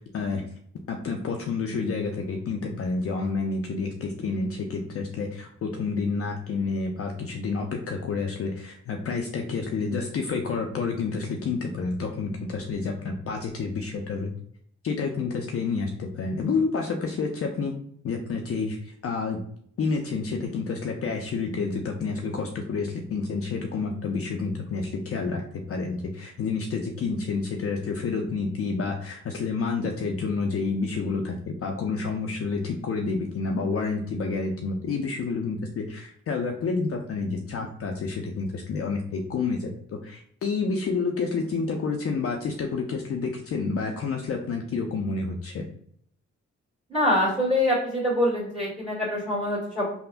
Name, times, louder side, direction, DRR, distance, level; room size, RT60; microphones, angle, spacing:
voice 1, 0.9-14.3 14.8-17.7 18.0-19.4 19.8-25.4 25.7-45.7, left 4 dB, 50° left, 2 dB, 0.4 m, -29 dB
voice 2, 46.9-49.9, left 1 dB, 20° right, -7 dB, 1.4 m, -24 dB
3.4 x 2.1 x 2.4 m, 0.65 s
cardioid pair, 55°, 29 cm